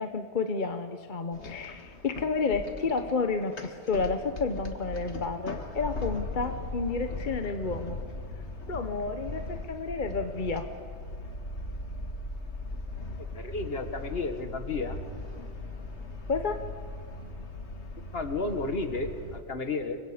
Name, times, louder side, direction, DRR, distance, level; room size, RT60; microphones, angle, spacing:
voice 1, 0.0-8.0 8.7-10.7 16.3-16.6, left 4 dB, 50° left, 7 dB, 1.1 m, -31 dB
sound 1, 1.3-19.4, left 2 dB, 85° left, 1.9 m, -39 dB
voice 2, 13.3-15.0 18.1-20.0, left 3 dB, 65° left, 7 dB, 1.8 m, -32 dB
27.5 x 23.0 x 5.1 m, 2.2 s
omnidirectional pair, 1.1 m